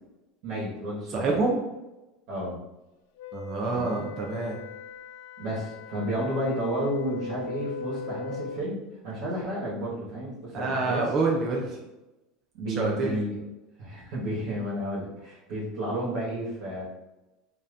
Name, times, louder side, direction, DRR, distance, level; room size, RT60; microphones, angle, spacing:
voice 1, 0.4-1.4 2.3-2.6 3.7-4.1 5.4-11.0 12.5-13.4 13.8-16.8, equal, 65° right, -7 dB, 1.4 m, -32 dB
voice 2, 1.1-1.6 3.3-4.6 10.5-11.8 12.8-13.2, right 3 dB, 25° right, -1 dB, 0.5 m, -27 dB
Wind instrument woodwind instrument, 3.2-8.7, left 5 dB, 75° left, 0.4 m, -39 dB
5.1 x 2.8 x 2.6 m, 1.0 s
cardioid pair, 175°, 0 cm